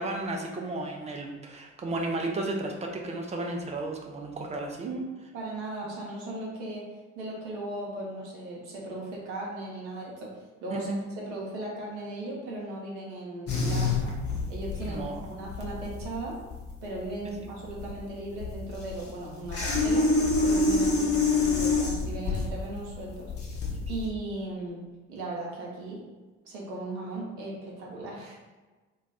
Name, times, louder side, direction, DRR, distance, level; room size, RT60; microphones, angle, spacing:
voice 1, 0.0-4.9 10.7-11.0 14.8-15.3, right 2 dB, 20° right, 1 dB, 0.4 m, -33 dB
voice 2, 4.8-6.9 7.1-14.2 14.5-16.4 16.8-20.1 20.4-23.3 23.9-24.8 25.1-26.0 26.4-28.4, right 2 dB, 70° right, -3 dB, 0.8 m, -37 dB
sound 1, 13.5-24.1, left 3 dB, 40° left, 0.8 m, -27 dB
2.3 x 2.3 x 3.4 m, 1.2 s
figure-of-eight pair, 50°, 38 cm